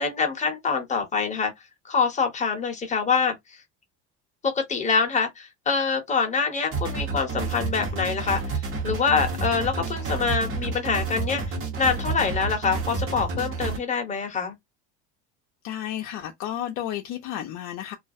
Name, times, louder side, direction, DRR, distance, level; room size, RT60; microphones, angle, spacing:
voice 1, 0.0-1.5 1.9-3.3 4.4-11.4 11.8-14.5, left 5 dB, 20° left, 0.7 m, -25 dB
sound 1, 6.7-13.8, right 4 dB, 40° right, 1.0 m, -30 dB
voice 2, 15.6-17.9, left 11 dB, 60° left, 0.5 m, -32 dB
2.4 x 2.0 x 2.5 m
cardioid pair, 140°, 33 cm